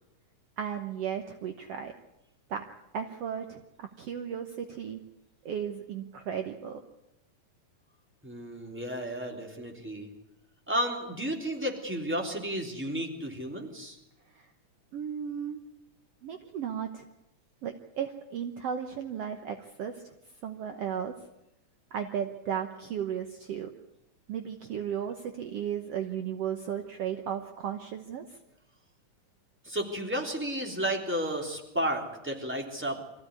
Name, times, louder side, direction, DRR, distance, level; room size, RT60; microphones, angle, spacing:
voice 1, 0.6-1.9 2.5-2.7 2.9-5.0 5.5-6.8 14.4-14.5 14.9-15.6 16.2-17.1 17.6-20.1 20.4-21.1 21.9-23.7 24.3-28.4, right 8 dB, 65° right, 6 dB, 1.9 m, -35 dB
voice 2, 8.2-10.1 10.7-14.0 29.6-33.0, equal, 5° right, 1 dB, 3.1 m, -32 dB
24.5 x 15.0 x 9.8 m, 0.88 s
omnidirectional pair, 3.4 m